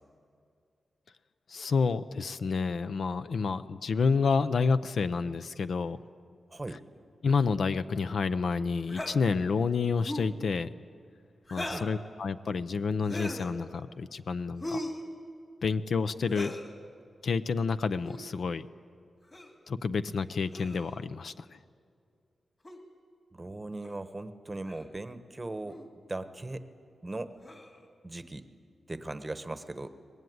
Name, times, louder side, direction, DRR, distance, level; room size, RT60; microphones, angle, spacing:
voice 1, 1.5-6.0 7.2-10.7 11.5-14.8 15.6-16.6 17.2-18.7 19.7-21.6, left 5 dB, 55° left, 12 dB, 0.6 m, -29 dB
voice 2, 6.5-6.8 11.6-11.8 23.3-25.8 26.1-26.6 27.0-27.3 28.0-28.4 28.9-29.9, right 2 dB, 15° right, 10 dB, 1.1 m, -38 dB
sound 1, 8.9-9.1 10.0-10.3 11.5-11.9 13.0-13.5 14.6-15.0 16.3-16.7 18.0-18.2 19.3-19.5 20.5-21.0 22.6-22.8 23.8-24.0 24.6-24.9 25.7-25.9 27.4-27.8, left 1 dB, 25° left, 2.5 m, -38 dB
24.0 x 20.5 x 9.4 m, 2.4 s
wide cardioid pair, 180°, 0 cm